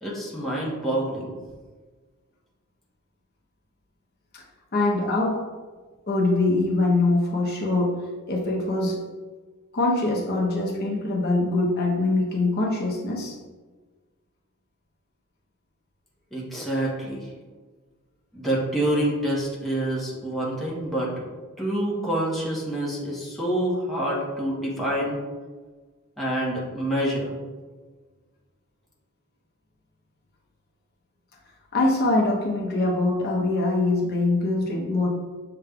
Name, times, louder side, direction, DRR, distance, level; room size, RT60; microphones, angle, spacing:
voice 1, 0.0-1.3 16.3-17.3 18.3-21.2 21.6-25.2 26.2-27.3, right 1 dB, ahead, -6 dB, 0.9 m, -27 dB
voice 2, 4.7-5.4 6.1-8.0 8.3-9.0 9.7-13.4 31.7-35.1, left 2 dB, 50° left, -2 dB, 0.7 m, -23 dB
6.6 x 2.3 x 3.5 m, 1.4 s
head